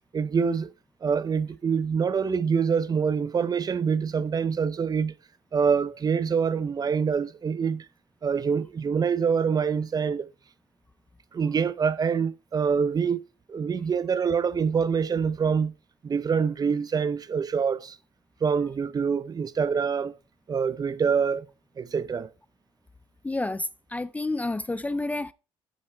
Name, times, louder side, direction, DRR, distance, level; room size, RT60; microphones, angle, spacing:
voice 1, 0.1-0.7 1.0-5.2 5.5-7.9 8.2-10.3 11.3-13.2 13.5-15.7 16.0-18.0 18.4-20.2 20.5-21.5 21.8-22.3, right 6 dB, 35° right, 0.6 m, -25 dB
voice 2, 23.2-25.3, left 2 dB, 15° left, 0.4 m, -30 dB
8.1 x 7.4 x 4.4 m
supercardioid pair, 75°, 11 cm